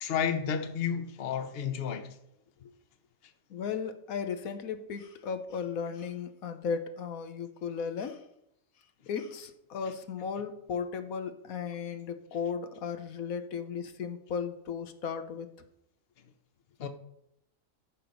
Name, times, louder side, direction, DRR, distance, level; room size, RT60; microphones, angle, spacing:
voice 1, 0.0-2.2 16.8-16.9, left 7 dB, 50° left, 1.1 m, -31 dB
voice 2, 3.5-8.2 9.1-15.5, left 6 dB, 85° left, 1.4 m, -35 dB
13.5 x 6.0 x 5.3 m
omnidirectional pair, 1.5 m